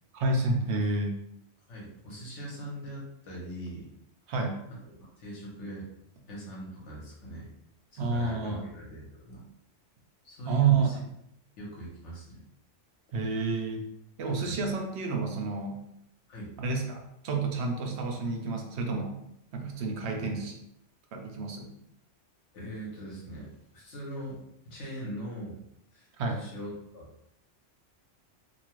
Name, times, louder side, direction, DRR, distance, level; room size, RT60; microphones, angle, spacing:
voice 1, 0.1-1.2 4.3-4.6 8.0-8.6 10.5-10.9 13.1-13.8 14.2-15.8 16.6-19.2 19.5-20.5 21.1-21.7 26.2-26.4, right 4 dB, 70° right, 2 dB, 0.8 m, -29 dB
voice 2, 1.7-3.9 4.7-5.9 6.3-7.5 7.9-9.4 10.2-10.9 11.6-12.4 14.4-14.6 16.3-16.5 20.2-20.3 22.5-25.6 25.9-26.1 26.3-27.1, right 1 dB, 75° left, -3 dB, 1.3 m, -41 dB
2.8 x 2.3 x 3.0 m, 0.78 s
omnidirectional pair, 1.2 m